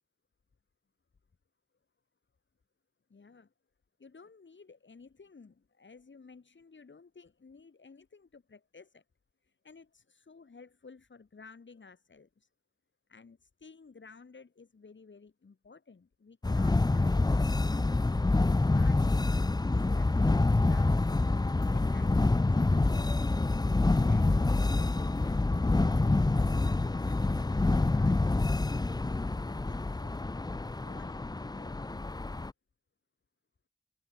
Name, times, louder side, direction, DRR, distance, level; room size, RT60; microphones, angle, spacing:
voice 1, 3.1-3.5 4.0-9.0 9.4-12.5 13.1-17.3 18.7-21.2 21.7-23.2 29.4-30.2 30.8-31.8, left 4 dB, 75° left, 5.7 m, -55 dB
sound 1, 16.4-32.5, left 2 dB, 20° left, 0.6 m, -27 dB
wide cardioid pair, 95°, 19 cm